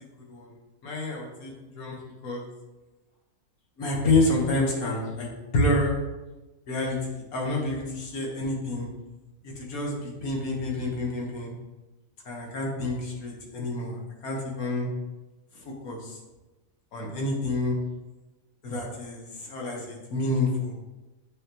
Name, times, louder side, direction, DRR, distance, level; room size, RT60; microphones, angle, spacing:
voice 1, 0.8-2.4 3.8-5.9 6.7-7.0 7.3-8.9 9.6-11.5 12.2-14.9 15.8-16.2 16.9-17.8 18.6-20.7, left 2 dB, 90° left, -1 dB, 1.7 m, -28 dB
8.5 x 4.1 x 2.9 m, 1.1 s
omnidirectional pair, 1.5 m